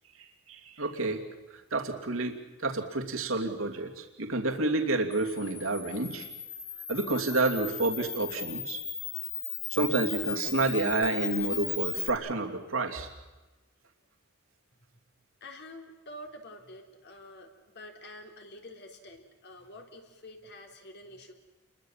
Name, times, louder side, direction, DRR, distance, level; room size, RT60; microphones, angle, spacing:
voice 1, 0.5-1.2 1.7-6.3 6.9-8.8 9.7-13.1, right 2 dB, 70° right, 3 dB, 2.8 m, -29 dB
Camera, 5.1-12.1, left 7 dB, 30° left, 2.7 m, -37 dB
voice 2, 15.4-21.3, left 1 dB, 55° left, 4 dB, 3.7 m, -48 dB
29.0 x 22.5 x 7.5 m, 1.1 s
head